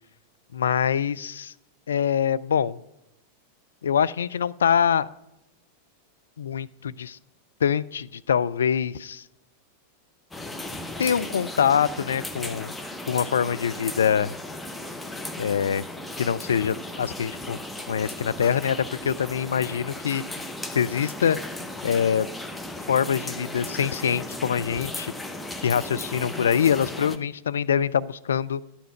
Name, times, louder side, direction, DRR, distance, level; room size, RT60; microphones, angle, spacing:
voice 1, 0.5-1.5 1.9-2.8 3.8-5.1 6.4-7.2 7.6-9.2 11.0-12.7 13.1-14.3 15.4-15.8 16.2-17.6 17.9-20.2 20.7-21.4 21.8-22.3 22.9-25.1 25.6-28.6, left 8 dB, 65° left, 16 dB, 0.3 m, -24 dB
sound 1, 10.3-27.2, left 1 dB, 5° left, 0.8 m, -36 dB
11.5 x 7.1 x 5.7 m, 0.87 s
figure-of-eight pair, 90°, 0 cm